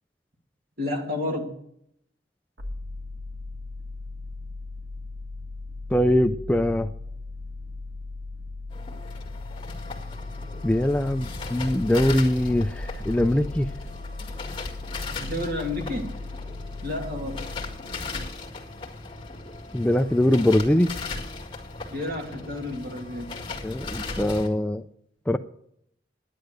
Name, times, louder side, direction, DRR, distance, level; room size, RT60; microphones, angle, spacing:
voice 1, 0.8-1.5 15.2-16.1 16.8-17.4 21.9-23.3, left 1 dB, 55° right, 1 dB, 2.6 m, -31 dB
sound 1, 2.6-18.4, left 3 dB, 80° right, 2.1 m, -38 dB
voice 2, 5.9-6.9 10.6-13.7 19.7-20.9 23.6-24.8 25.3-25.4, left 1 dB, 5° left, 9 dB, 0.4 m, -22 dB
sound 2, 8.7-24.5, left 3 dB, 30° left, 1.8 m, -37 dB
10.5 x 10.0 x 6.4 m, 0.71 s
head